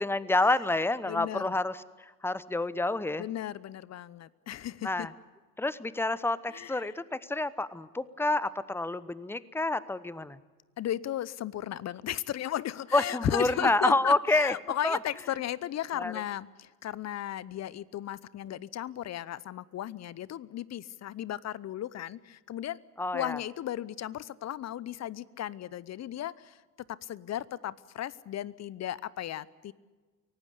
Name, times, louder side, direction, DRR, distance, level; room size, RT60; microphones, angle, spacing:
voice 1, 0.0-3.2 4.8-5.1 5.6-10.4 12.9-14.5 14.8-15.0 16.0-16.1 23.0-23.4, left 2 dB, 5° left, 17 dB, 0.9 m, -28 dB
voice 2, 1.0-1.4 3.2-5.1 6.5-6.9 10.8-22.8 23.1-26.6 26.9-29.7, left 12 dB, 35° left, 21 dB, 0.8 m, -35 dB
24.0 x 18.0 x 8.3 m, 1.3 s
hypercardioid pair, 75°, 47 cm